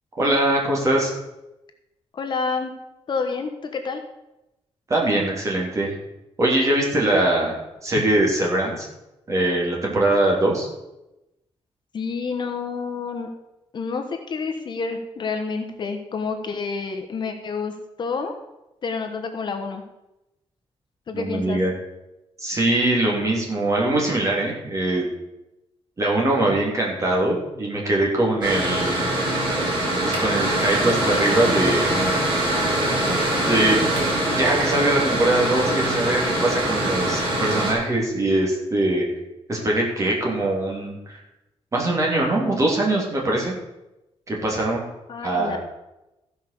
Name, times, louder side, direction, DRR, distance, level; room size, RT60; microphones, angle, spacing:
voice 1, 0.2-1.1 4.9-5.9 6.4-8.9 9.3-10.7 21.1-21.7 22.4-25.1 26.0-29.0 30.0-32.0 33.4-33.8 34.4-39.0 39.5-41.2 41.7-43.5 44.3-44.8 45.2-45.6, right 1 dB, 30° right, -2 dB, 3.2 m, -22 dB
voice 2, 2.1-2.7 3.1-4.0 11.9-13.3 13.7-17.7 18.0-18.3 18.8-19.8 21.1-21.6 45.1-45.6, left 4 dB, 45° left, 5 dB, 1.2 m, -28 dB
Mechanical fan, 28.4-37.7, right 1 dB, 45° right, 4.3 m, -23 dB
15.0 x 5.6 x 6.8 m, 0.94 s
wide cardioid pair, 175°, 11 cm